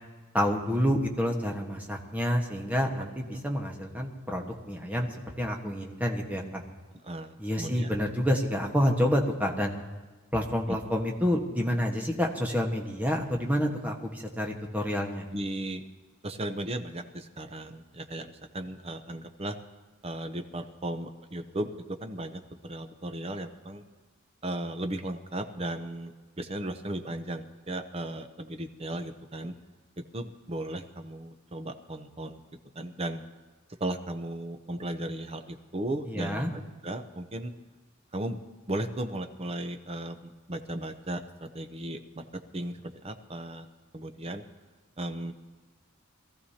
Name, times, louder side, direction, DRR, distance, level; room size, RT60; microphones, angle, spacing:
voice 1, 0.3-5.1 5.4-6.6 7.4-9.7 10.3-15.2 36.1-36.5, equal, 10° right, 1 dB, 1.4 m, -28 dB
voice 2, 7.0-7.9 10.7-10.8 15.3-15.8 16.2-19.6 20.0-23.8 24.4-26.1 26.4-29.5 30.1-32.4 32.7-33.2 33.8-37.5 38.1-38.4 38.7-42.2 42.5-43.7 43.9-44.4 45.0-45.3, right 1 dB, 30° right, 7 dB, 0.8 m, -36 dB
22.0 x 14.5 x 2.9 m, 1.3 s
head